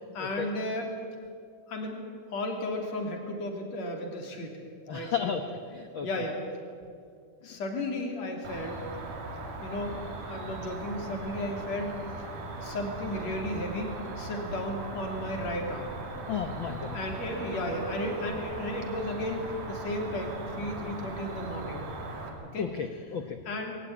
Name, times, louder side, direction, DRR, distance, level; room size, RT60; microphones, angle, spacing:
voice 1, 0.1-0.9 1.7-2.0 2.3-4.6 4.9-5.3 6.0-6.4 7.4-8.8 9.6-10.0 10.3-11.9 12.6-16.0 16.9-21.9 22.4-22.7 23.5-23.8, left 1 dB, 55° left, 2 dB, 4.1 m, -34 dB
voice 2, 4.9-5.4 5.7-6.2 16.3-17.0 22.6-23.4, left 7 dB, 80° left, 7 dB, 1.1 m, -33 dB
Cricket, 8.4-22.3, right 2 dB, 70° right, 4.5 m, -39 dB
21.0 x 17.5 x 10.0 m, 2.3 s
omnidirectional pair, 3.8 m